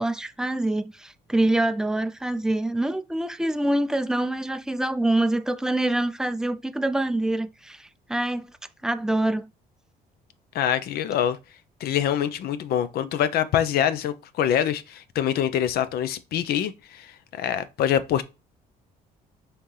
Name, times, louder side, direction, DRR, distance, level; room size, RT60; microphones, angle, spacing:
voice 1, 0.0-8.5 8.8-9.5, right 1 dB, 5° right, 0.3 m, -25 dB
voice 2, 10.5-11.4 11.8-18.2, left 10 dB, 65° left, 0.6 m, -25 dB
5.6 x 2.9 x 3.2 m
cardioid pair, 110°, 17 cm